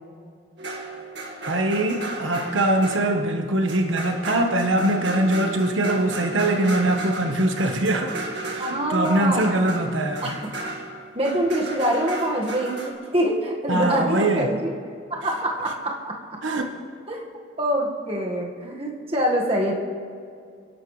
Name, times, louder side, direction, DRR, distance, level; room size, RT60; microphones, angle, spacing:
sound 1, 0.6-12.9, right 2 dB, 65° right, 1.9 m, -35 dB
voice 1, 1.5-8.1 8.5-10.3 13.7-14.5 16.4-16.7, right 1 dB, 85° right, 4 dB, 1.3 m, -22 dB
voice 2, 8.6-9.6 10.2-10.4 11.1-16.2 17.1-17.3 17.6-19.7, right 1 dB, 30° right, -1 dB, 1.8 m, -25 dB
29.5 x 11.5 x 3.3 m, 2.3 s
head